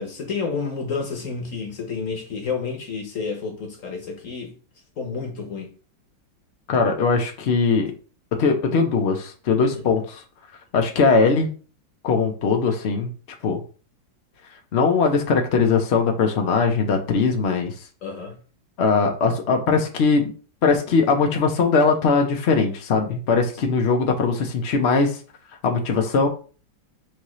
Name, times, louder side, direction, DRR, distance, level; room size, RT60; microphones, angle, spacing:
voice 1, 0.0-4.5 5.0-5.7 18.0-18.4, left 5 dB, 50° left, 1.1 m, -30 dB
voice 2, 6.7-7.9 8.4-10.2 10.7-11.5 12.0-13.1 13.4-13.6 14.7-17.7 18.8-20.3 20.6-25.2 25.6-26.3, left 4 dB, 70° left, 0.6 m, -20 dB
6.2 x 2.7 x 3.1 m
omnidirectional pair, 2.1 m